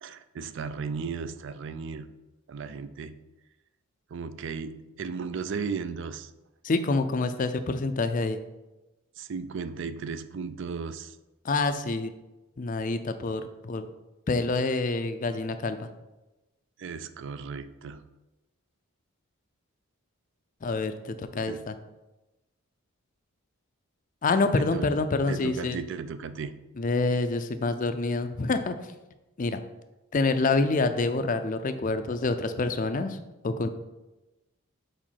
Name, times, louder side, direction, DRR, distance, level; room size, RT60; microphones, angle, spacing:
voice 1, 0.0-2.1 2.5-3.2 4.1-6.3 9.2-11.2 16.8-18.1 21.5-21.7 24.5-24.9 25.3-26.6, right 5 dB, 55° right, 13 dB, 0.3 m, -35 dB
voice 2, 6.6-8.4 11.4-12.1 12.6-13.9 14.3-15.9 20.6-21.7 24.2-25.8 26.8-28.9 29.4-29.6 30.1-33.2 33.4-33.7, left 3 dB, 35° left, 9 dB, 0.4 m, -27 dB
5.0 x 4.5 x 5.6 m, 1.0 s
head